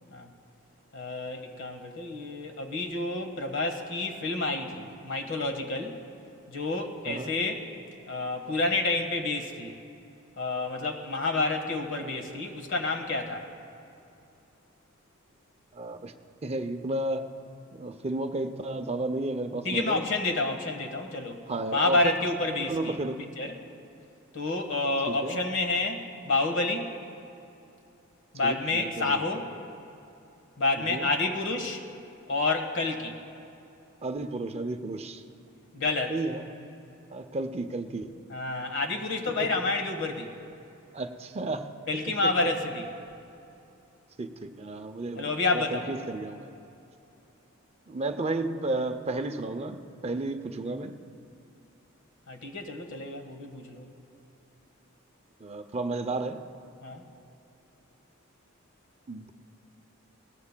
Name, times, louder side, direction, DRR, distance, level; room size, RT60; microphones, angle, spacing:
voice 1, 0.9-6.0 6.5-7.6 8.1-9.7 10.4-13.5 19.6-21.4 21.7-23.5 24.3-26.9 28.3-29.4 30.6-31.8 32.3-33.2 35.7-36.1 38.3-40.3 41.9-42.9 45.1-45.9 52.3-53.9 56.8-57.0, left 2 dB, 65° left, 4 dB, 1.4 m, -29 dB
voice 2, 15.7-16.1 16.4-17.3 17.7-20.0 21.5-22.1 22.7-23.2 25.1-25.4 28.4-29.2 30.7-31.1 34.0-35.2 36.1-36.4 37.1-38.1 39.4-39.5 40.9-41.7 42.2-42.3 44.2-46.5 47.9-51.0 55.4-56.4 59.1-59.3, right 2 dB, 30° right, 7 dB, 0.5 m, -32 dB
21.5 x 18.0 x 2.2 m, 2.8 s
head